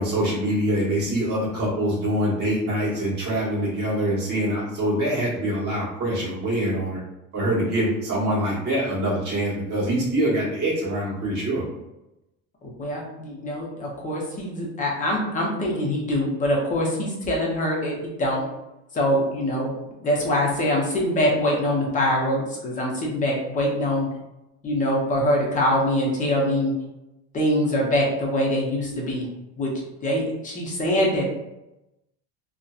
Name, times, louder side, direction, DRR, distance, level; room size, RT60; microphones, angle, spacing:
voice 1, 0.0-7.0 7.3-11.6, right 1 dB, 30° right, -8 dB, 1.2 m, -24 dB
voice 2, 12.6-18.4 18.9-19.7 20.0-24.1 24.6-26.7 27.3-29.3 29.6-31.2, left 1 dB, 25° left, -2 dB, 0.5 m, -24 dB
2.6 x 2.0 x 2.3 m, 0.93 s
cardioid pair, 150°, 32 cm